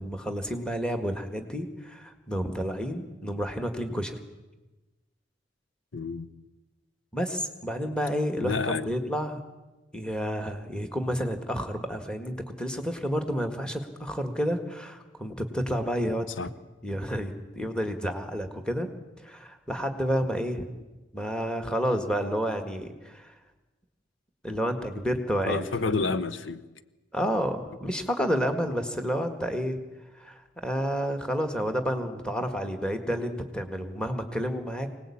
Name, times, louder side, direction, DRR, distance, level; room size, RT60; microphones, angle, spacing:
voice 1, 0.0-4.1 7.1-9.4 9.9-16.3 16.8-18.9 19.2-20.7 21.1-23.3 24.4-26.0 27.1-29.8 30.2-34.9, equal, 5° left, 1.8 m, -30 dB
voice 2, 5.9-6.3 8.4-8.9 16.4-16.5 25.5-26.6, left 4 dB, 85° left, 1.0 m, -29 dB
25.0 x 19.0 x 8.7 m
head